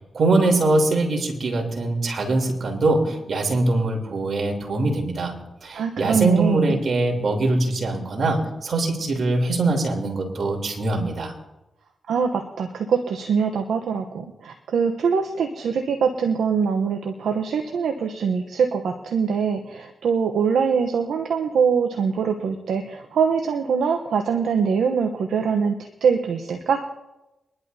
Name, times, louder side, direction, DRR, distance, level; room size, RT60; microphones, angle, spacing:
voice 1, 0.1-5.3 5.6-11.3, right 2 dB, 65° right, 2 dB, 3.2 m, -22 dB
voice 2, 5.7-6.8 12.1-26.8, right 6 dB, 85° right, 4 dB, 0.8 m, -23 dB
24.0 x 11.0 x 2.7 m, 1.0 s
cardioid pair, 50°, 0 cm